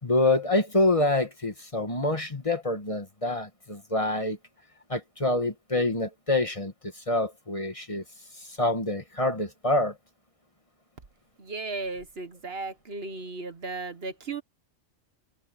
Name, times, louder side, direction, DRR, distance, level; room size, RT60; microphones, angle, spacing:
voice 1, 0.0-4.4 4.9-8.0 8.4-10.0, left 2 dB, 25° left, 1.7 m, -26 dB
voice 2, 11.4-14.4, right 3 dB, 55° right, 1.5 m, -35 dB
omnidirectional pair, 1.2 m